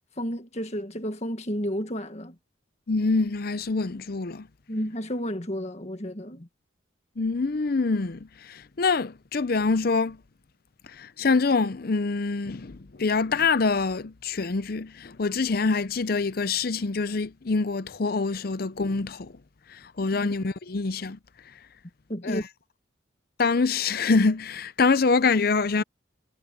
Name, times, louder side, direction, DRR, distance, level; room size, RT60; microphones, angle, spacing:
voice 1, 0.2-2.4 4.7-6.5 20.2-20.3 22.1-22.5, equal, 35° left, 1.9 m, -31 dB
voice 2, 2.9-4.5 7.2-10.2 10.9-19.3 19.7-21.2 22.2-22.4 23.4-25.8, left 4 dB, 50° left, 0.6 m, -25 dB
head